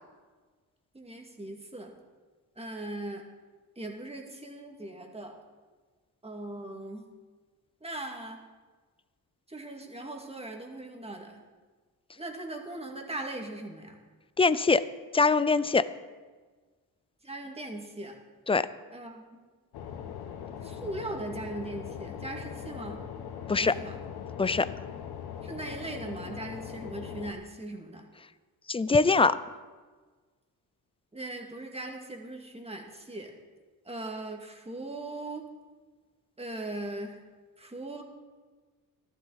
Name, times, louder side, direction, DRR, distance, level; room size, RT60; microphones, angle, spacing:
voice 1, 0.9-1.9 2.6-3.2 3.8-5.3 6.2-7.0 7.8-8.4 9.5-11.4 12.2-14.0 17.2-18.2 18.9-19.4 20.6-23.0 23.5-24.0 25.4-28.1 31.1-33.3 33.9-35.4 36.4-37.2 37.6-38.0, right 2 dB, 15° right, 2 dB, 2.2 m, -39 dB
voice 2, 14.4-14.8 15.1-15.9 18.5-18.7 23.5-23.7 24.4-24.7 28.7-29.4, left 4 dB, 15° left, 15 dB, 0.5 m, -22 dB
sound 1, 19.7-27.3, left 8 dB, 90° left, 1.1 m, -40 dB
15.0 x 12.5 x 4.1 m, 1.4 s
cardioid pair, 80°, 38 cm